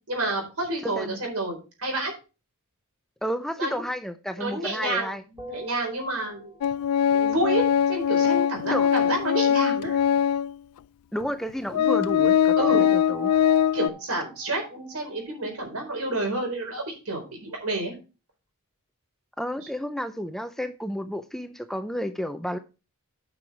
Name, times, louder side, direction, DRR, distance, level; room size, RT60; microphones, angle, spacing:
voice 1, 0.1-2.1 3.6-3.8 4.4-6.5 7.1-10.0 12.6-12.8 13.7-17.9, right 2 dB, 75° right, 4.4 m, -29 dB
voice 2, 0.8-1.2 3.2-5.2 8.7-8.9 11.1-13.4 19.4-22.6, equal, ahead, 0.5 m, -31 dB
sound 1, 5.4-6.9 12.6-15.9, right 2 dB, 15° right, 2.4 m, -43 dB
Organ, 6.6-10.5 11.2-11.3 11.7-13.9, left 9 dB, 85° left, 0.3 m, -22 dB
9.4 x 6.1 x 4.9 m
head